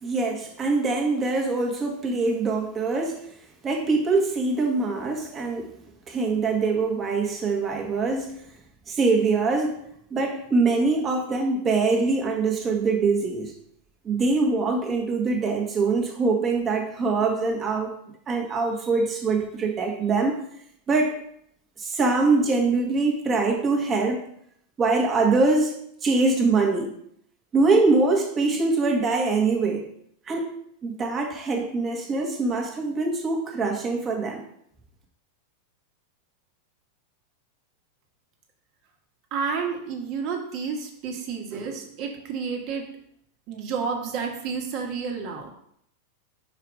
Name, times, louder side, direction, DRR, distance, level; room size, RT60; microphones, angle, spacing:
voice 1, 0.0-3.3 3.6-5.7 6.1-8.4 8.9-9.8 10.1-13.5 14.0-17.9 18.3-20.5 20.9-21.1 21.8-24.2 24.8-25.7 26.0-27.0 27.5-29.9 30.3-30.6 30.8-34.4, right 3 dB, 25° right, 2 dB, 1.4 m, -23 dB
voice 2, 39.3-42.9 43.5-45.5, right 5 dB, 50° right, 2 dB, 1.5 m, -30 dB
4.9 x 4.8 x 4.8 m, 0.70 s
hypercardioid pair, 115°, 0 cm